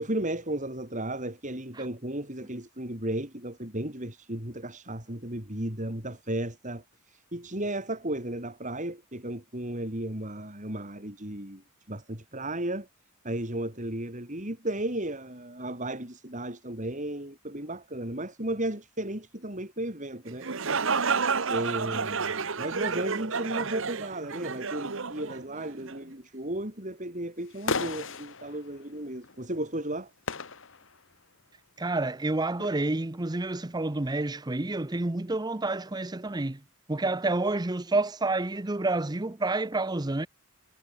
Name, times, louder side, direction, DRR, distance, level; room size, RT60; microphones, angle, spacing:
voice 1, 0.0-12.9 13.2-20.5 21.5-30.1, right 1 dB, 35° right, 6.0 m, -34 dB
sound 1, 20.3-26.0, right 5 dB, 60° right, 1.3 m, -30 dB
sound 2, 27.5-29.4 29.7-30.0 30.3-31.0 31.8-31.9 32.2-32.3 32.6-33.0, left 4 dB, 60° left, 2.1 m, -35 dB
voice 2, 31.8-36.6 36.9-40.3, right 2 dB, 20° right, 0.7 m, -29 dB
head